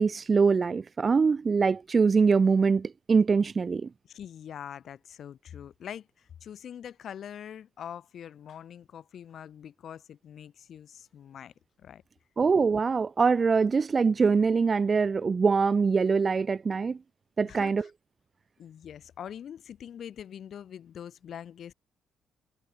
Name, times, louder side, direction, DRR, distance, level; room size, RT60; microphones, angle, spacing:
voice 1, 0.0-3.9 12.4-17.0 17.4-17.8, right 5 dB, 35° right, 0.4 m, -23 dB
voice 2, 4.1-12.0 17.4-17.9 18.6-21.7, left 9 dB, 60° left, 5.1 m, -44 dB
cardioid pair, 90°, 0 cm